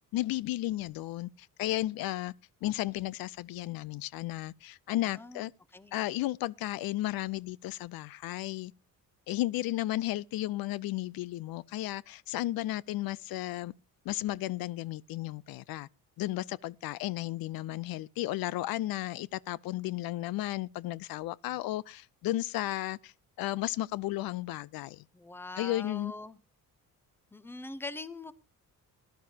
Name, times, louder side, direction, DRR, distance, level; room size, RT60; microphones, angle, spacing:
voice 1, 0.1-2.3 2.6-5.5 5.9-8.7 9.3-13.7 14.1-15.9 16.2-23.1 23.4-25.0 25.6-26.1, left 16 dB, 80° left, 0.5 m, -34 dB
voice 2, 5.1-5.5 5.7-6.0 25.1-26.4 27.3-28.3, left 2 dB, 5° left, 0.7 m, -42 dB
20.0 x 11.5 x 2.8 m
cardioid pair, 160°, 35 cm